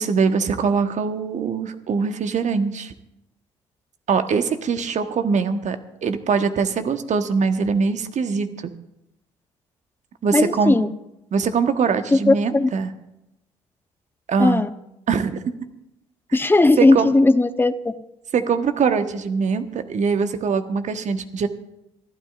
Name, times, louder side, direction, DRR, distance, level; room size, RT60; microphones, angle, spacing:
voice 1, 0.0-2.9 4.1-8.5 10.2-10.7 11.3-12.9 14.3-14.6 15.1-15.4 16.8-17.1 18.3-21.5, right 5 dB, 50° right, 8 dB, 1.3 m, -22 dB
voice 2, 10.3-10.9 12.1-12.7 14.4-14.7 16.3-18.0, left 2 dB, 15° left, 11 dB, 0.9 m, -17 dB
27.5 x 12.0 x 2.5 m, 0.86 s
hypercardioid pair, 50°, 16 cm